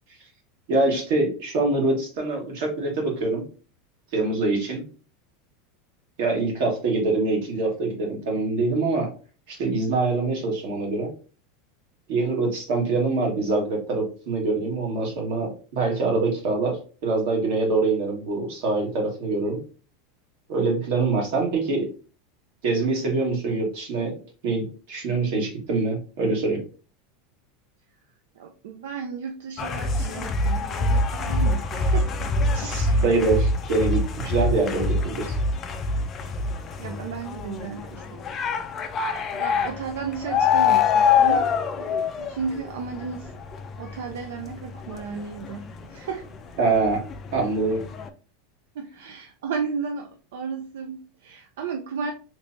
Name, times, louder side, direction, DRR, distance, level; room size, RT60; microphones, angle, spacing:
voice 1, 0.7-3.4 4.1-4.9 6.2-9.1 9.5-11.1 12.1-19.6 20.5-21.9 22.6-24.2 24.4-26.6 32.5-35.3 46.6-47.0 47.3-47.8, right 3 dB, 55° right, 1.5 m, -24 dB
voice 2, 28.4-32.1 32.6-33.1 34.2-34.6 36.2-36.3 36.8-38.2 39.3-43.3 43.8-46.3 48.7-52.1, right 5 dB, 80° right, 0.5 m, -34 dB
sound 1, 29.6-46.4 46.7-48.1, left 4 dB, 20° left, 0.3 m, -25 dB
3.2 x 3.1 x 2.6 m
supercardioid pair, 170°, 0 cm